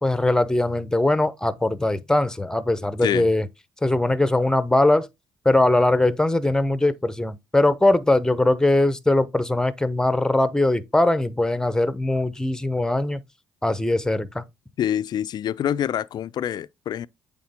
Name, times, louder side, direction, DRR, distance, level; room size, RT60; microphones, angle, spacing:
voice 1, 0.0-3.5 3.8-5.1 5.4-13.2 13.6-14.4, left 2 dB, 10° left, 0.9 m, -21 dB
voice 2, 14.8-17.1, left 10 dB, 55° left, 0.4 m, -26 dB
8.5 x 3.7 x 3.6 m
supercardioid pair, 65°, 9 cm